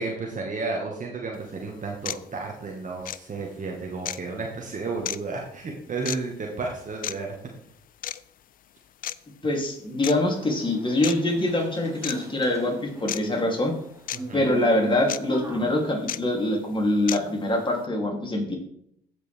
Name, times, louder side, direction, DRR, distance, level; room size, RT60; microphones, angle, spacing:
voice 1, 0.0-7.4 14.1-14.5, right 3 dB, 40° right, 0 dB, 1.6 m, -32 dB
sound 1, 1.3-1.4 2.0-2.2 3.0-3.2 4.0-4.2 5.0-5.2 6.0-6.2 7.0-7.1 8.0-8.2 9.0-9.1 10.0-10.1 11.0-11.2 12.0-12.2 13.1-13.2 14.1-14.2 15.1-15.2 16.1-16.2 17.1-17.2, left 11 dB, 50° left, 0.4 m, -31 dB
voice 2, 9.4-13.7 14.3-18.6, left 1 dB, 25° left, 0 dB, 2.9 m, -24 dB
sound 2, 10.0-16.1, right 1 dB, 15° right, 1.9 m, -42 dB
15.0 x 5.2 x 3.4 m, 0.71 s
hypercardioid pair, 50°, 19 cm